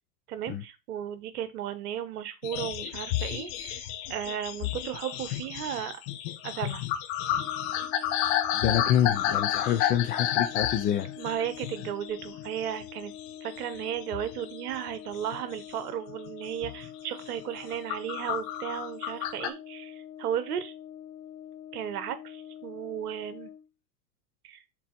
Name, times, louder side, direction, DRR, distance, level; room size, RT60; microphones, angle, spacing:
voice 1, 0.3-6.0 6.4-6.9 11.2-13.1 13.4-20.7 21.7-23.5 24.4-24.6, right 10 dB, 65° right, 1.3 m, -35 dB
sound 1, 2.4-12.9 13.1-13.8 14.1-15.6 16.1-16.3 16.6-16.9 17.4-19.5, left 11 dB, 45° left, 1.0 m, -31 dB
Brass instrument, 7.3-23.7, left 10 dB, 70° left, 1.8 m, -45 dB
voice 2, 8.5-11.1, left 10 dB, 20° left, 0.5 m, -26 dB
6.0 x 4.2 x 4.2 m
hypercardioid pair, 110°, 49 cm